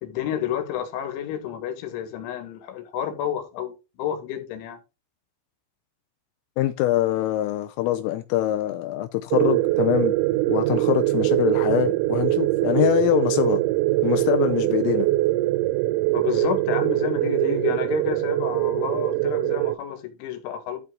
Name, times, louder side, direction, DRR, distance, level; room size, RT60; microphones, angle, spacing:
voice 1, 0.0-4.8 16.1-20.8, left 10 dB, 70° left, 3.9 m, -30 dB
voice 2, 6.6-10.2 10.5-13.6 14.0-15.1, left 14 dB, 90° left, 3.3 m, -24 dB
sound 1, 9.3-19.8, right 18 dB, 90° right, 3.2 m, -22 dB
12.0 x 5.4 x 3.7 m
omnidirectional pair, 5.7 m